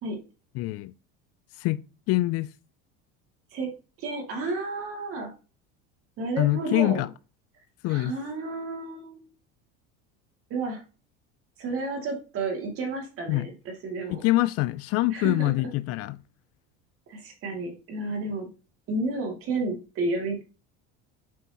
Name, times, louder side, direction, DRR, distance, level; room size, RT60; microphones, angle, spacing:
voice 1, 0.6-0.9 1.6-1.8 2.1-2.5 6.4-7.1 7.8-8.1 13.3-13.5 14.1-16.2, left 18 dB, 50° left, 0.4 m, -24 dB
voice 2, 4.0-5.3 6.2-7.1 7.9-9.3 10.5-10.8 11.6-14.2 15.1-15.5 17.1-18.5 18.9-20.4, right 3 dB, 45° right, 2.6 m, -31 dB
7.7 x 5.4 x 3.0 m
cardioid pair, 145°, 30 cm